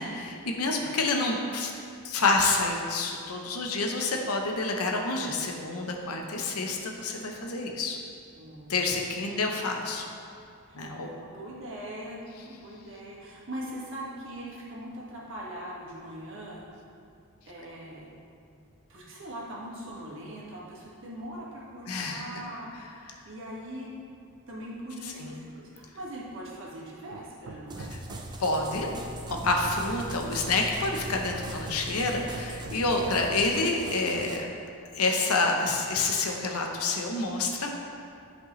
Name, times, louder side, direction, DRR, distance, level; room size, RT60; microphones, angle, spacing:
voice 1, 0.0-1.7 2.0-8.0 8.7-10.1 10.7-11.1 21.9-22.2 25.2-25.3 27.9-28.0 28.4-28.9 29.3-34.5 34.9-37.7, left 3 dB, 80° left, 2 dB, 0.8 m, -28 dB
voice 2, 8.3-8.8 9.2-9.5 10.6-16.6 17.5-18.1 18.9-23.9 24.5-27.9 32.9-33.1, right 1 dB, 60° right, -5 dB, 1.7 m, -41 dB
Hammer, 27.1-28.5 28.9-30.3 31.0-33.0 33.6-34.5, right 4 dB, 90° right, 0.5 m, -46 dB
sound 1, 27.7-33.5, equal, 45° left, 1.3 m, -41 dB
sound 2, 27.7-34.4, right 2 dB, 20° right, 0.5 m, -43 dB
10.5 x 5.3 x 3.1 m, 2.4 s
head